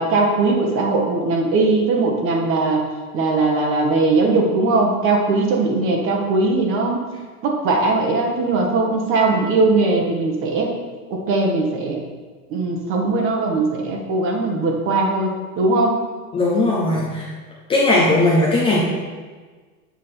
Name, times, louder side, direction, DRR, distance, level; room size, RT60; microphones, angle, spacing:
voice 1, 0.0-2.8 3.1-7.0 7.4-10.7 11.1-12.0 12.5-15.3 15.6-16.0, right 3 dB, 30° right, 1 dB, 1.1 m, -19 dB
voice 2, 16.3-17.3 17.7-18.8, left 2 dB, 10° left, -5 dB, 0.6 m, -17 dB
8.0 x 4.7 x 4.4 m, 1.4 s
hypercardioid pair, 140°, 46 cm